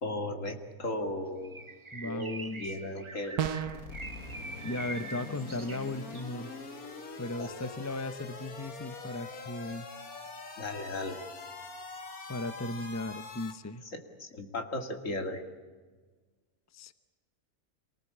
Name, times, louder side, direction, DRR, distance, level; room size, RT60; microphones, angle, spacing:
voice 1, 0.0-1.6 2.0-3.4 7.4-7.5 10.6-11.2 13.9-15.4, left 1 dB, 60° left, 5 dB, 2.7 m, -36 dB
Bird, 1.4-6.4, right 2 dB, 25° right, 0.9 m, -44 dB
voice 2, 1.9-2.8 4.6-6.5 7.2-9.9 12.3-13.8 16.7-16.9, left 2 dB, 15° left, 11 dB, 0.7 m, -36 dB
sound 1, 3.4-3.9, right 9 dB, 85° right, 1.4 m, -31 dB
sound 2, 3.6-13.5, left 3 dB, 75° left, 2.5 m, -44 dB
27.0 x 19.0 x 8.6 m, 1.4 s
omnidirectional pair, 1.6 m